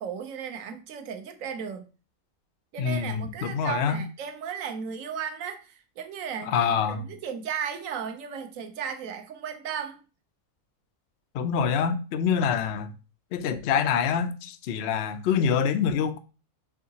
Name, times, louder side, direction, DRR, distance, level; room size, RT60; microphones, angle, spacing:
voice 1, 0.0-1.9 2.7-10.0, right 7 dB, 65° right, 1.0 m, -35 dB
voice 2, 2.8-4.0 6.4-7.0 11.3-12.9 13.3-16.2, left 7 dB, 80° left, 0.5 m, -26 dB
4.7 x 3.6 x 2.7 m
omnidirectional pair, 1.6 m